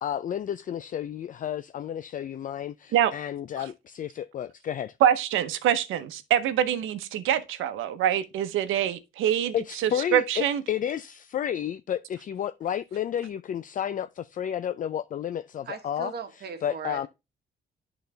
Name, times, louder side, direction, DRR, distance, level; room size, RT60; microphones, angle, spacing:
voice 1, 0.0-4.9 9.5-16.1 16.6-17.1, left 10 dB, 45° left, 0.4 m, -31 dB
voice 2, 5.0-10.6, right 10 dB, 90° right, 0.9 m, -25 dB
voice 3, 15.6-17.1, right 5 dB, 55° right, 1.4 m, -38 dB
10.5 x 4.0 x 3.3 m
cardioid pair, 90°, 20 cm